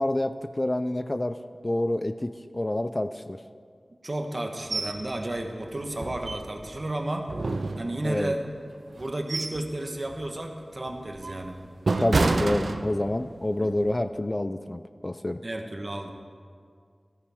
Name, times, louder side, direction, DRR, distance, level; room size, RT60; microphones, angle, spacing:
voice 1, 0.0-1.4 1.6-3.4 8.0-8.3 12.0-15.4, left 1 dB, 35° left, 10 dB, 0.3 m, -28 dB
voice 2, 4.0-7.3 7.8-8.4 9.0-11.6 13.6-13.7 15.4-16.1, right 1 dB, 45° right, 4 dB, 1.0 m, -32 dB
sound 1, 4.7-5.0 5.4-5.5 6.0-6.8 7.3-8.3 8.9-9.7 10.1-10.3 10.9-13.3 13.7-13.9, right 3 dB, 80° right, 0.5 m, -28 dB
13.5 x 9.2 x 3.5 m, 2.1 s
wide cardioid pair, 65°, 0 cm